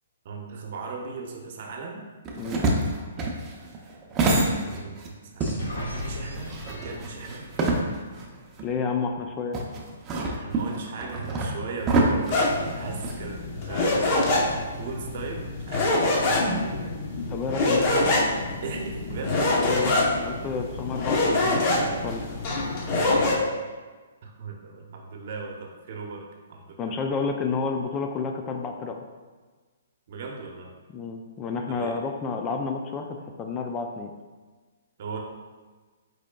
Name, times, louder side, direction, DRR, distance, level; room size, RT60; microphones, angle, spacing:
voice 1, 0.2-2.0 4.6-7.5 10.4-14.4 14.8-16.7 18.6-19.7 24.2-27.0 30.1-30.7 31.7-32.0 35.0-35.2, right 4 dB, 50° right, 2 dB, 0.8 m, -38 dB
sound 1, 2.2-5.1 5.4-8.2 8.6-8.7 9.5-13.2, right 2 dB, 20° right, 0.6 m, -26 dB
sound 2, 5.4-9.1, left 1 dB, 85° left, 1.1 m, -38 dB
voice 2, 8.6-9.6 17.3-18.1 19.6-20.0 20.2-22.2 26.8-29.0 30.9-34.1, left 5 dB, 20° left, 3 dB, 0.3 m, -30 dB
sound 3, 12.3-23.3, left 2 dB, 35° left, 0.9 m, -25 dB
4.8 x 4.6 x 2.3 m, 1.4 s
hypercardioid pair, 150°, 0 cm